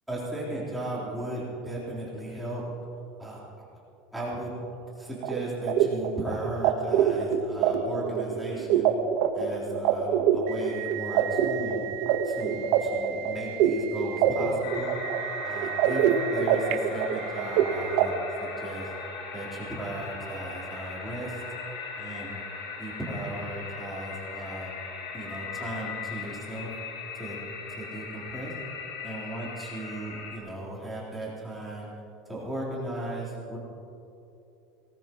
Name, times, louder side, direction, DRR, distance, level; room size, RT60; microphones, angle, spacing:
voice 1, 0.1-2.6 3.2-3.6 4.1-4.5 5.0-8.9 9.3-11.9 12.2-15.0 15.4-16.0 16.3-18.1 18.4-18.9 19.3-21.4 21.9-22.4 22.8-24.7 25.1-26.7 27.1-27.4 27.7-28.5 29.0-31.9 32.3-33.6, right 1 dB, ahead, -9 dB, 4.0 m, -36 dB
sound 1, 5.2-18.0, right 9 dB, 60° right, 1.2 m, -25 dB
sound 2, 14.6-30.4, left 5 dB, 85° left, 4.9 m, -39 dB
24.0 x 19.0 x 3.1 m, 2.9 s
cardioid pair, 165°, 0 cm